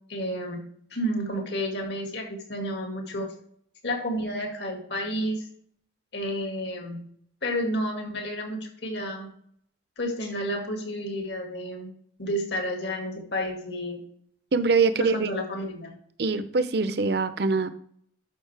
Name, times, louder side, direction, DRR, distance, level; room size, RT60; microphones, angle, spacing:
voice 1, 0.1-0.6 0.9-3.3 3.8-5.5 6.1-7.0 7.4-9.3 10.0-11.9 12.2-14.0 15.0-15.9, equal, 70° left, 2 dB, 2.0 m, -31 dB
voice 2, 14.5-15.3 16.2-17.7, right 4 dB, 60° right, 12 dB, 0.6 m, -23 dB
12.0 x 5.4 x 3.4 m, 0.64 s
head